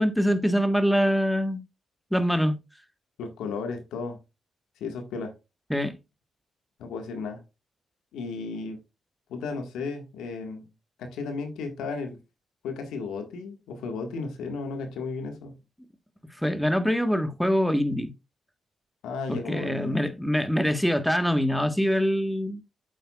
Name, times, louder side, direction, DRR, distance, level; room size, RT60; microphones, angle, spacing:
voice 1, 0.0-1.6 2.1-2.6 5.7-5.9 16.4-18.1 19.3-22.6, equal, ahead, 1.3 m, -24 dB
voice 2, 3.2-4.2 4.8-5.3 6.8-7.4 8.1-8.8 9.3-10.7 11.0-12.2 12.6-15.6 19.0-20.0, left 4 dB, 85° left, 1.6 m, -34 dB
8.5 x 7.8 x 2.4 m
supercardioid pair, 55°, 0 cm